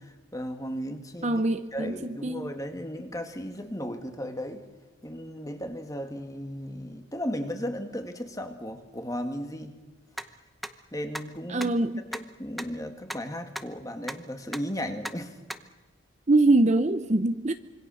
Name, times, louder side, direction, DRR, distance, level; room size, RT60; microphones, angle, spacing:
voice 1, 0.0-1.4 1.7-4.6 5.0-9.8 10.9-11.8 12.1-15.4, equal, 15° left, 2.0 m, -35 dB
voice 2, 1.2-1.9 2.2-2.5 11.5-12.0 16.3-17.5, right 2 dB, 35° right, 0.7 m, -23 dB
sound 1, 10.2-10.3 10.6-10.7 11.1-11.2 11.6-11.7 12.1-12.2 12.6-12.7 13.1-13.2 13.5-13.6 14.1-14.2 14.5-14.6 15.0-15.1 15.5-15.6, equal, ahead, 0.8 m, -34 dB
26.0 x 24.5 x 6.4 m
head